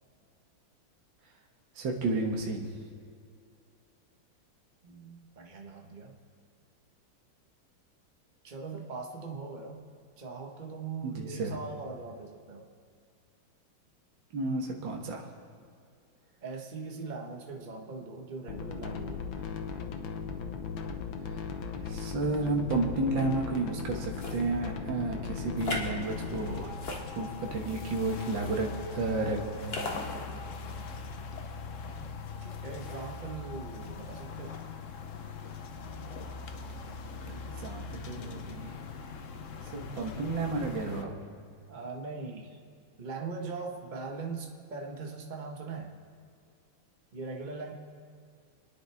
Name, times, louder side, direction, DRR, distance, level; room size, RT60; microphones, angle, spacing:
voice 1, 1.8-2.7 11.0-11.6 14.3-15.3 21.8-30.4 37.3-38.7 39.7-41.2, right 3 dB, 70° right, 0 dB, 2.1 m, -32 dB
voice 2, 4.8-6.2 8.4-9.8 10.2-12.7 16.4-19.4 32.0-34.7 41.7-42.6 43.0-46.0 47.1-47.7, right 4 dB, 25° right, 1 dB, 1.3 m, -41 dB
sound 1, 18.5-26.6, left 6 dB, 75° left, 1.7 m, -37 dB
sound 2, 24.1-24.4 25.6-25.9 26.7-27.5 28.3-28.6 29.7-30.0, left 1 dB, 30° left, 1.5 m, -36 dB
sound 3, 26.0-41.0, left 4 dB, 55° left, 0.9 m, -41 dB
26.5 x 10.0 x 3.5 m, 2.3 s
omnidirectional pair, 2.2 m